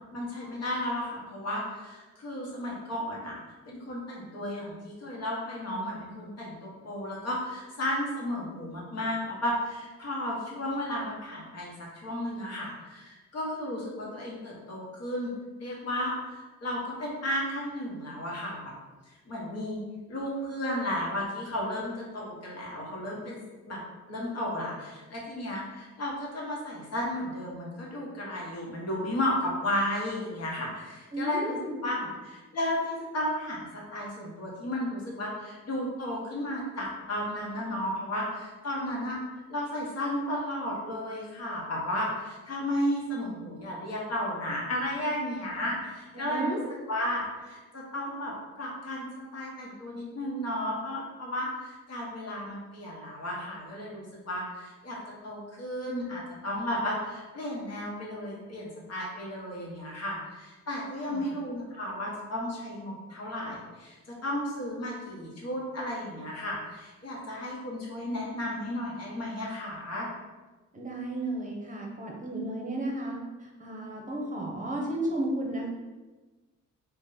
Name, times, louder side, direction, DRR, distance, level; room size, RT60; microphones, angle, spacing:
voice 1, 0.1-3.3 3.7-15.3 15.6-18.7 19.3-23.4 23.7-23.8 24.1-31.6 31.8-32.0 32.2-39.2 39.5-46.6 46.9-49.1 49.3-55.0 55.2-63.9 64.2-70.1, left 1 dB, 55° left, -4 dB, 1.2 m, -33 dB
voice 2, 31.1-32.1 46.1-46.6 61.0-61.3 70.7-75.7, right 1 dB, 25° right, -1 dB, 0.8 m, -33 dB
2.9 x 2.8 x 3.9 m, 1.2 s
cardioid pair, 90°, 30 cm